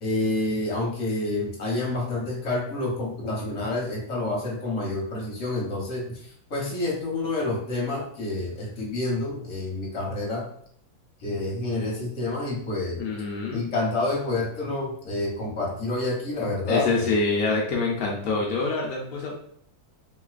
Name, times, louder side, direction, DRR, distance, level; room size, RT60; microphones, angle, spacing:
voice 1, 0.0-10.4 11.2-13.0 13.5-17.1, left 2 dB, 45° left, -3 dB, 1.1 m, -28 dB
voice 2, 13.0-13.6 16.7-19.5, left 3 dB, 80° left, -2 dB, 0.8 m, -26 dB
3.1 x 2.9 x 2.4 m, 0.65 s
omnidirectional pair, 2.2 m